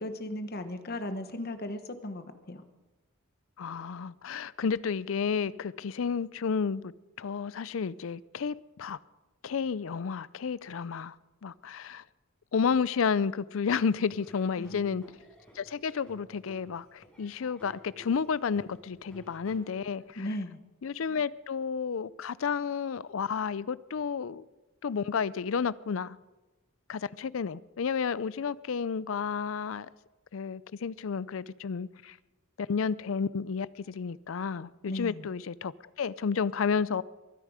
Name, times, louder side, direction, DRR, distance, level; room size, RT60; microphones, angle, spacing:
voice 1, 0.0-2.6 14.6-15.0 20.2-20.6 34.8-35.2, left 1 dB, 45° left, 1.1 m, -36 dB
voice 2, 3.6-6.9 7.2-9.0 9.4-11.2 11.4-12.0 12.5-15.0 15.6-20.4 20.8-24.5 24.8-26.2 26.9-29.9 30.3-32.2 32.6-35.7 36.0-37.0, left 6 dB, 70° left, 0.4 m, -31 dB
Laughter / Drum, 14.1-20.0, right 1 dB, 5° left, 5.1 m, -54 dB
22.5 x 10.0 x 4.9 m
head